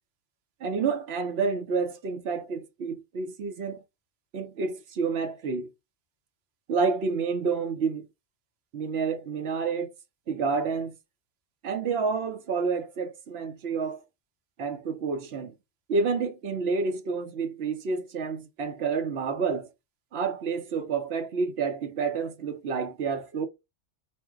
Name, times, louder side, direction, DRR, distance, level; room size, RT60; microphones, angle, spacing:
voice 1, 0.6-3.8 4.3-5.7 6.7-8.1 8.7-9.9 10.3-10.9 11.6-14.0 14.6-15.5 15.9-19.7 20.1-23.5, right 5 dB, 65° right, 0.9 m, -29 dB
4.3 x 2.1 x 3.5 m
omnidirectional pair, 1.3 m